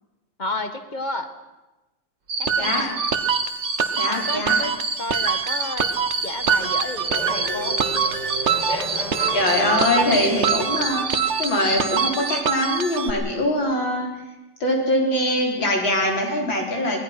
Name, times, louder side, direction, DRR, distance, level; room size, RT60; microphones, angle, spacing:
voice 1, 0.4-1.3 2.4-3.0 4.1-4.7 5.0-5.9 6.2-8.1 8.7-9.2 10.0-10.5 10.8-11.1, left 2 dB, 25° left, 8 dB, 1.5 m, -32 dB
sound 1, 2.3-12.4 12.6-12.8, right 3 dB, 75° right, 3.4 m, -27 dB
sound 2, 2.5-13.1, right 7 dB, 45° right, 1.1 m, -25 dB
voice 2, 4.0-4.6 9.3-14.1 14.6-17.0, left 1 dB, 90° left, 0 dB, 5.0 m, -23 dB
Race car auto racing / Accelerating revving vroom, 5.9-11.5, equal, 55° left, 4.2 m, -34 dB
24.5 x 18.5 x 6.0 m, 1.1 s
omnidirectional pair, 2.0 m